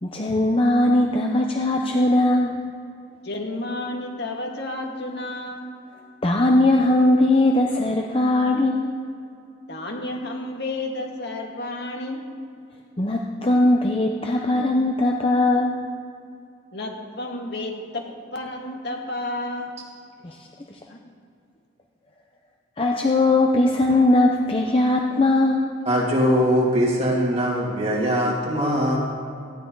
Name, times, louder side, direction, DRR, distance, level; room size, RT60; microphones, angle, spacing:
voice 1, 0.0-2.6 6.2-8.9 13.0-15.8 20.2-20.8 22.8-25.7, left 2 dB, 25° left, 1 dB, 0.8 m, -20 dB
voice 2, 3.2-5.7 9.7-12.2 16.7-19.7 20.9-21.0, left 2 dB, 55° left, 1 dB, 2.1 m, -31 dB
voice 3, 25.8-29.0, equal, 30° right, -2 dB, 2.8 m, -21 dB
18.5 x 15.0 x 4.0 m, 2.5 s
head